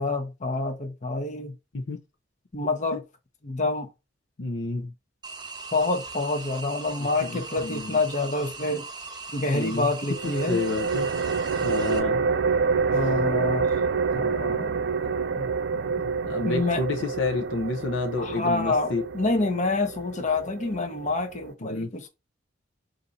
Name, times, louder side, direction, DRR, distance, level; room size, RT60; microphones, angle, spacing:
voice 1, 0.0-1.5 2.5-3.0 3.4-3.9 5.7-8.9 9.3-10.6 12.9-13.7 14.2-14.8 16.4-16.8 18.2-22.1, left 3 dB, 40° left, 0.8 m, -27 dB
voice 2, 4.4-4.9 7.2-8.0 9.4-9.9 10.2-11.1 11.6-12.2 14.1-14.2 14.5-14.7 15.4-19.0 21.6-21.9, left 3 dB, 70° left, 0.7 m, -30 dB
sound 1, 5.2-12.0, right 4 dB, 20° right, 0.8 m, -39 dB
sound 2, 10.2-21.5, right 5 dB, 60° right, 0.4 m, -28 dB
4.0 x 2.7 x 4.0 m
head